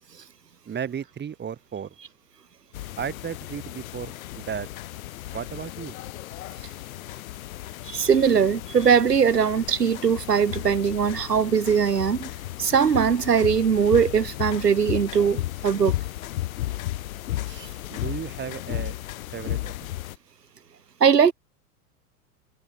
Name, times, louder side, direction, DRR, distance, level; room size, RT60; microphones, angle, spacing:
voice 1, 0.7-1.9 3.0-4.7 5.3-6.0 17.9-18.9 19.3-19.7, right 8 dB, 20° right, 5.8 m, -34 dB
sound 1, 2.7-20.2, left 15 dB, 60° left, 6.4 m, -34 dB
voice 2, 7.9-12.3 12.6-15.9 17.6-17.7 21.0-21.3, right 7 dB, 85° right, 2.0 m, -20 dB
figure-of-eight pair, 95°, 47 cm